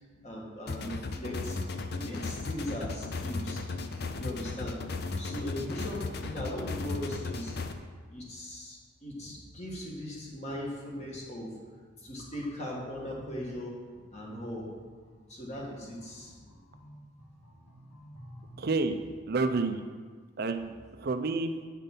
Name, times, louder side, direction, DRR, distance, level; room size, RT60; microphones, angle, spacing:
voice 1, 0.2-1.6 1.9-3.6 4.1-4.8 5.1-7.5 8.1-11.5 12.0-13.7 14.1-14.7 15.3-16.4, equal, 30° left, -3 dB, 1.7 m, -39 dB
sound 1, 0.7-7.7, left 3 dB, 50° left, 0.5 m, -36 dB
sound 2, 12.9-18.6, equal, 85° left, 1.7 m, -53 dB
voice 2, 18.6-19.0 19.3-19.8 20.4-21.5, right 3 dB, 45° right, 7 dB, 0.5 m, -29 dB
8.3 x 5.6 x 5.4 m, 1.5 s
head